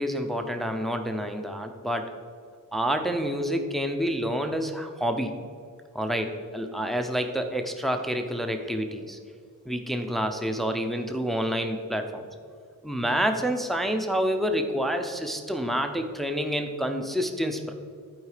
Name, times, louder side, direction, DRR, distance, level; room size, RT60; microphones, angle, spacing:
voice 1, 0.0-2.1 2.7-5.3 5.9-9.2 9.7-12.3 12.8-17.7, equal, ahead, 5 dB, 0.6 m, -28 dB
11.0 x 4.8 x 4.9 m, 2.2 s
wide cardioid pair, 135°, 33 cm